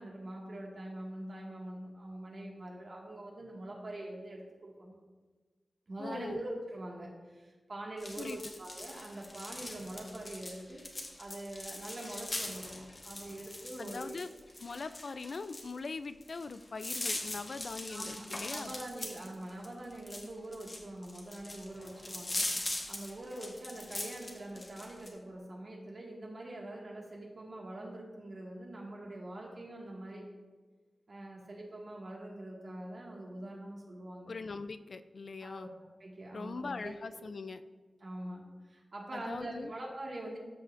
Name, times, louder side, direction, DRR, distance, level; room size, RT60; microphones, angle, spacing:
voice 1, 0.0-4.9 5.9-14.1 17.9-30.3 31.1-34.3 35.4-35.7 36.0-36.9 38.0-40.4, right 1 dB, 55° right, -2 dB, 1.8 m, -44 dB
voice 2, 6.0-6.4 8.2-8.4 13.8-14.3 14.6-18.7 34.3-35.7 36.3-37.6 39.1-39.7, left 4 dB, 65° left, 11 dB, 0.3 m, -41 dB
sound 1, 8.0-25.1, left 2 dB, 40° left, 1.2 m, -41 dB
13.5 x 5.8 x 2.5 m, 1.4 s
wide cardioid pair, 95°, 0 cm